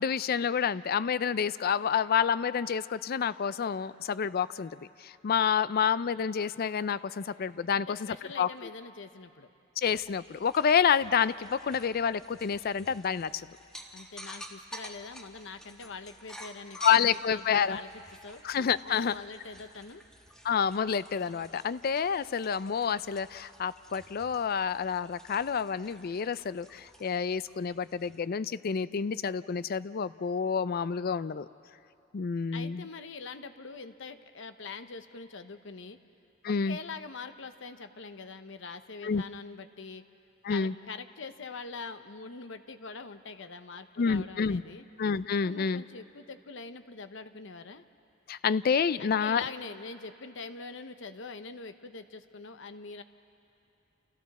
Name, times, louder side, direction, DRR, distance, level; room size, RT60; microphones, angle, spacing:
voice 1, 0.0-4.7 5.0-8.5 9.8-13.3 16.8-17.8 18.4-19.1 20.4-31.5 32.1-32.9 36.4-36.8 39.0-39.2 40.4-40.7 44.0-44.6 45.0-45.8 48.3-49.4, left 7 dB, 50° left, 16 dB, 0.4 m, -28 dB
voice 2, 7.7-9.5 13.9-17.9 18.2-18.4 18.8-20.0 32.5-36.0 36.4-40.0 40.5-44.8 45.4-47.8 49.0-53.0, left 4 dB, 65° left, 9 dB, 0.9 m, -43 dB
sound 1, 9.9-28.2, equal, 5° left, 1.5 m, -51 dB
29.5 x 29.0 x 4.2 m, 2.7 s
head